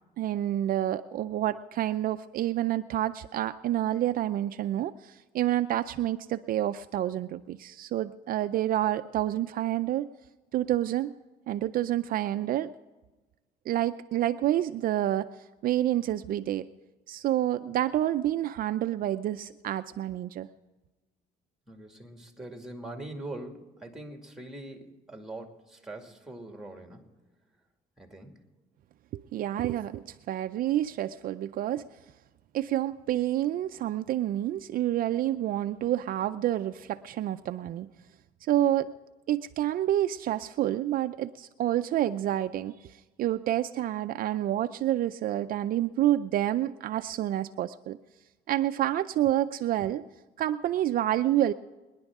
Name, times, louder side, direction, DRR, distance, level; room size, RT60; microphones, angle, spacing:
voice 1, 0.2-10.1 10.5-11.1 11.5-12.7 13.7-15.3 15.6-16.7 17.1-20.5 29.1-31.8 32.5-37.9 38.5-38.9 39.3-42.9 43.2-48.0 48.5-50.0 50.4-51.5, right 13 dB, 60° right, 10 dB, 0.5 m, -28 dB
voice 2, 21.7-27.1 28.0-28.3, right 2 dB, 5° right, 4 dB, 2.3 m, -42 dB
24.5 x 10.5 x 3.6 m, 1.2 s
cardioid pair, 110°, 17 cm